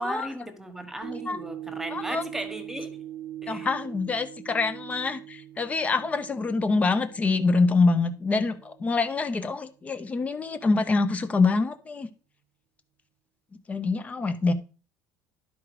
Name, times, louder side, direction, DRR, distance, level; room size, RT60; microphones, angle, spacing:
voice 1, 0.0-3.0 3.4-3.7, right 1 dB, 5° right, 1.3 m, -36 dB
sound 1, 1.0-9.4 9.9-10.0, right 12 dB, 90° right, 0.9 m, -42 dB
voice 2, 1.9-2.2 3.5-12.1 13.7-14.5, left 3 dB, 20° left, 0.7 m, -25 dB
11.5 x 4.9 x 4.8 m
cardioid pair, 150°, 7 cm